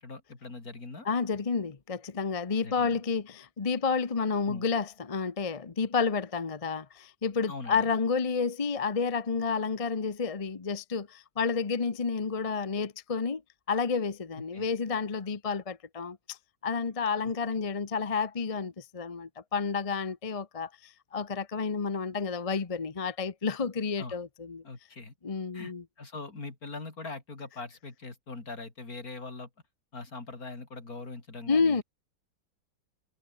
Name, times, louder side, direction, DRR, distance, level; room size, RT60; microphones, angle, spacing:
voice 1, 0.0-1.1 2.6-3.0 4.5-4.6 7.5-7.9 14.5-14.7 17.2-17.3 24.0-24.2 24.6-25.1 25.5-29.5 29.9-31.8, left 3 dB, 55° left, 4.2 m, -42 dB
voice 2, 1.1-13.4 13.7-16.4 16.6-24.6 25.2-25.8 31.5-31.8, left 5 dB, 30° left, 0.7 m, -30 dB
omnidirectional pair, 1.9 m